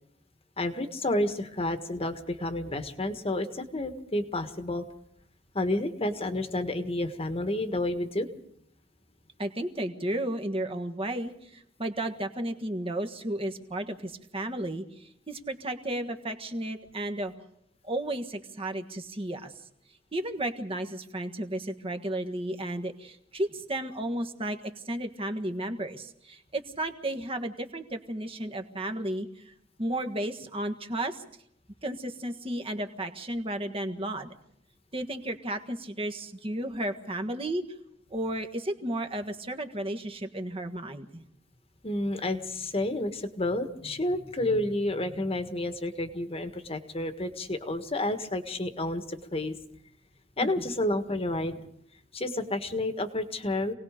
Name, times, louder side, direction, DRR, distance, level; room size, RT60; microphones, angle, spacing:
voice 1, 0.6-4.8 5.5-8.3 41.8-49.5 50.4-51.7 52.1-53.7, left 1 dB, 30° left, 8 dB, 1.6 m, -30 dB
voice 2, 9.4-17.3 17.8-19.5 20.1-24.6 24.8-29.5 29.8-31.2 31.8-34.3 34.9-37.6 38.1-41.2 50.4-50.5, right 1 dB, 30° right, 7 dB, 1.6 m, -33 dB
27.0 x 19.0 x 5.1 m, 0.70 s
head